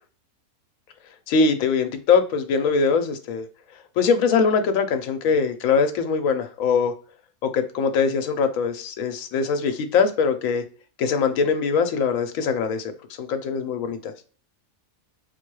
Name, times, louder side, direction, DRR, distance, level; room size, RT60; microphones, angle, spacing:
voice 1, 1.3-3.5 4.0-6.9 7.4-10.6 11.0-12.9 13.2-14.1, left 5 dB, 70° left, 1.0 m, -22 dB
4.2 x 2.2 x 3.0 m
omnidirectional pair, 1.5 m